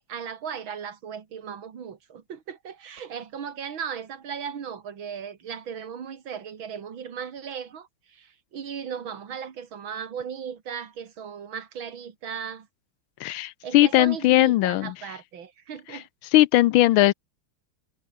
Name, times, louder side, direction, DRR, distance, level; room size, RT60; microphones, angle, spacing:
voice 1, 0.0-12.7 13.6-16.1, right 7 dB, 65° right, 2.8 m, -37 dB
voice 2, 13.2-14.9 15.9-16.0 16.3-17.1, left 16 dB, 75° left, 1.3 m, -19 dB
omnidirectional pair, 2.4 m